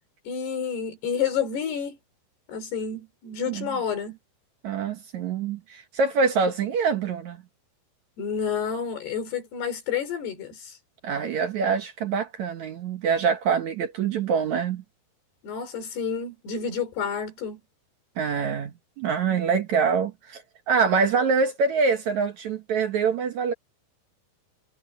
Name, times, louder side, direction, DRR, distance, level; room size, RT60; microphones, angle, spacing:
voice 1, 0.3-2.0 2.5-4.2 8.2-10.8 15.4-17.6, left 7 dB, 85° left, 6.2 m, -29 dB
voice 2, 4.6-7.4 11.0-14.8 18.2-23.5, right 5 dB, 60° right, 2.1 m, -25 dB
omnidirectional pair, 4.6 m